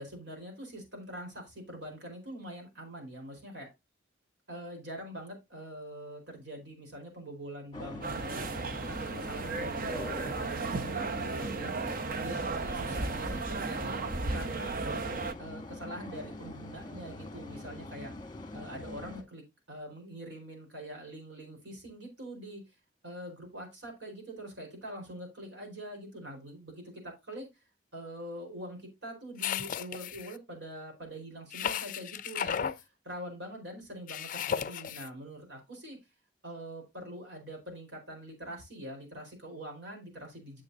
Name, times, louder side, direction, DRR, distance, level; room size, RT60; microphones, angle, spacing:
voice 1, 0.0-3.7 4.5-9.9 10.3-11.9 12.2-14.8 15.4-18.1 18.5-22.6 23.0-27.5 27.9-36.0 36.4-40.6, equal, 75° right, 2 dB, 4.4 m, -44 dB
sound 1, 7.7-19.2, left 2 dB, 25° left, 1.2 m, -44 dB
sound 2, 8.0-15.3, right 3 dB, 50° right, 0.7 m, -34 dB
sound 3, 29.4-30.3 31.5-32.8 34.1-35.1, left 8 dB, 45° left, 0.4 m, -34 dB
9.1 x 7.4 x 2.7 m, 0.22 s
head